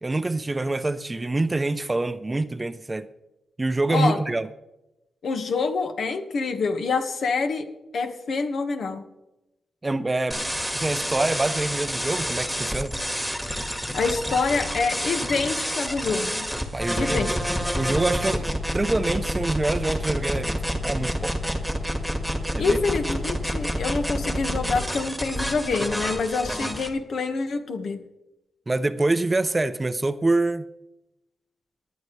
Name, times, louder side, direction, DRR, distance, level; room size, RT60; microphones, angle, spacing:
voice 1, 0.0-3.1 3.6-4.5 9.8-10.4 10.7-13.0 16.7-17.3 17.8-20.6 20.8-21.3 22.5-22.8 28.7-30.7, right 2 dB, 20° right, 12 dB, 0.6 m, -25 dB
voice 2, 5.2-7.7 7.9-9.0 13.9-16.5 16.9-17.3 22.6-28.0, left 4 dB, 70° left, 6 dB, 1.6 m, -26 dB
sound 1, 10.3-26.9, equal, 5° left, 1.7 m, -28 dB
19.0 x 10.5 x 3.3 m, 0.93 s
wide cardioid pair, 110°, 0 cm